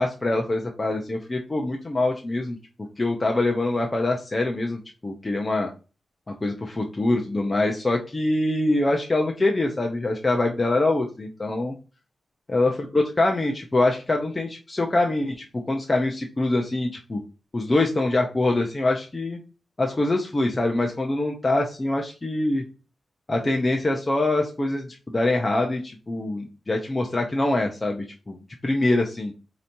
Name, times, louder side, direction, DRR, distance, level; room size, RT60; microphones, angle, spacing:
voice 1, 0.0-2.6 3.0-5.7 6.3-11.7 12.5-17.2 17.5-19.4 19.8-22.6 23.3-28.4 28.6-29.3, left 2 dB, 30° left, 1 dB, 0.7 m, -24 dB
4.9 x 2.9 x 2.7 m, 0.32 s
cardioid pair, 80°, 0 cm